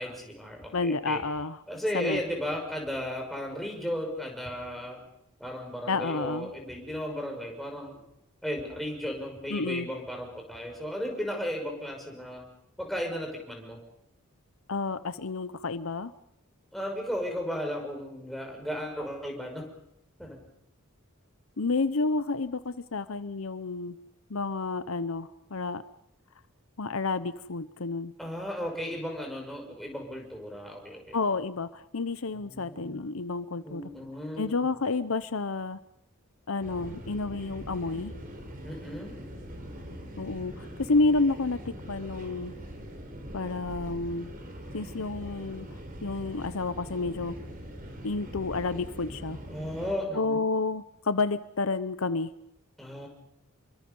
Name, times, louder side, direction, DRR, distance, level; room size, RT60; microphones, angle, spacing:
voice 1, 0.0-1.2 1.7-5.0 5.4-8.0 8.4-12.4 12.8-13.8 16.7-19.7 20.2-20.4 28.2-31.2 32.3-33.1 33.6-34.7 38.6-39.2 49.5-50.4 52.8-53.1, equal, ahead, 1 dB, 5.9 m, -35 dB
voice 2, 0.7-1.6 1.9-2.2 5.9-6.5 9.5-9.9 14.7-16.1 21.6-24.0 24.3-25.8 26.8-28.1 31.1-33.8 34.4-35.8 36.5-38.1 40.2-42.5 43.3-44.3 44.7-45.7 46.0-47.3 48.0-49.4 50.1-52.3, left 3 dB, 70° left, 13 dB, 0.8 m, -30 dB
sound 1, 36.6-49.9, equal, 40° right, 4.5 m, -42 dB
29.5 x 23.0 x 5.5 m, 0.77 s
head